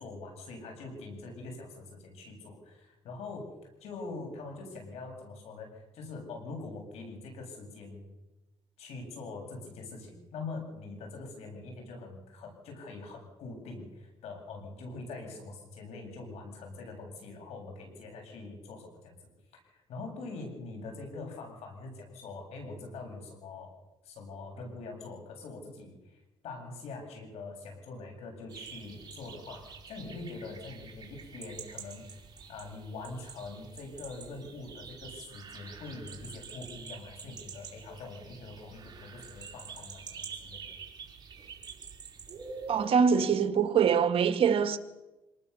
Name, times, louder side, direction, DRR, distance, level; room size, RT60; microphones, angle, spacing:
voice 1, 0.0-3.5 3.8-8.0 8.8-23.8 24.0-32.2 32.5-40.7, left 3 dB, 80° left, 8.0 m, -44 dB
sound 1, 28.5-42.9, right 5 dB, 40° right, 4.3 m, -47 dB
voice 2, 42.7-44.8, right 6 dB, 60° right, 1.9 m, -24 dB
26.5 x 19.5 x 7.1 m
cardioid pair, 110°, 11 cm